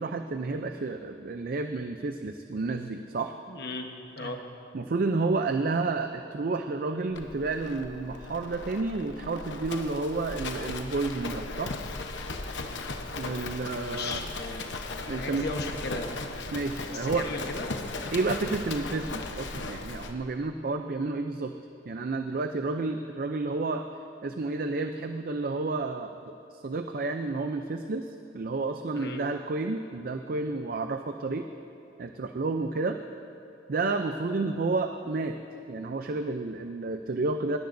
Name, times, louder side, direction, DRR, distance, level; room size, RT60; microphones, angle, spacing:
voice 1, 0.0-3.3 4.2-4.3 4.7-11.7 13.2-14.2 15.1-15.5 16.5-17.3 18.1-21.5 21.9-23.9 24.2-31.5 32.0-33.0 33.7-35.4 35.7-37.6, right 3 dB, 50° right, 7 dB, 0.5 m, -30 dB
voice 2, 3.5-3.9 4.2-4.4 13.8-14.7 15.1-16.2 16.9-17.7 18.5-18.6 29.0-29.2, left 2 dB, 60° left, 3 dB, 1.2 m, -36 dB
Livestock farm animals working animals, 7.1-20.2, left 3 dB, 80° left, 0.9 m, -37 dB
21.0 x 17.0 x 2.6 m, 2.8 s
head